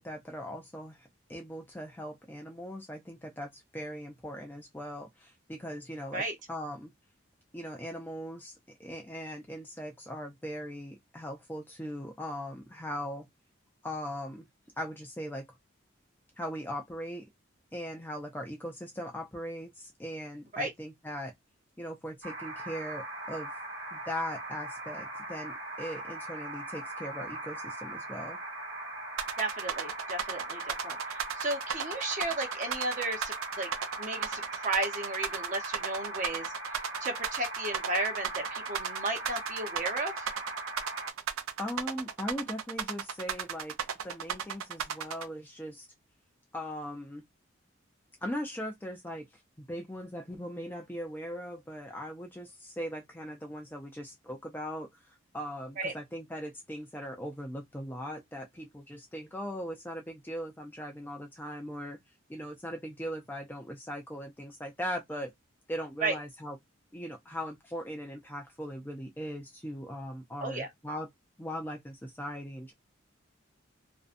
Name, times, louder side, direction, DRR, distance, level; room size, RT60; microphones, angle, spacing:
voice 1, 0.0-6.9 7.5-13.3 13.8-14.5 14.8-15.5 16.4-17.3 17.7-21.3 21.8-23.5 23.9-28.4 41.6-43.8 44.0-45.9 46.5-47.2 48.2-49.3 49.7-54.9 55.3-62.0 62.3-65.3 65.7-66.6 66.9-71.1 71.4-72.7, equal, 10° left, 0.4 m, -39 dB
sound 1, 22.2-41.1, right 2 dB, 65° right, 1.0 m, -40 dB
sound 2, 29.2-45.2, right 7 dB, 90° right, 0.4 m, -35 dB
voice 2, 29.4-33.7 34.0-40.3 55.8-55.9 66.0-66.2 70.4-70.7, right 2 dB, 40° right, 0.7 m, -34 dB
2.6 x 2.2 x 2.5 m
head